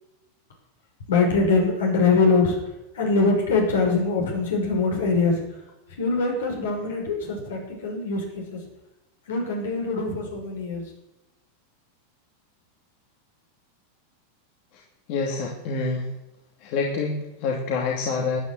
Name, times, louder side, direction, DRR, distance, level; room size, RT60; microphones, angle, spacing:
voice 1, 1.1-2.6 3.0-5.4 6.0-8.6 9.3-10.8, left 3 dB, 75° left, 1 dB, 5.9 m, -23 dB
voice 2, 15.1-16.1 16.6-18.4, left 4 dB, 55° left, 0 dB, 2.7 m, -27 dB
13.5 x 10.0 x 8.0 m, 0.95 s
hypercardioid pair, 95°, 0 cm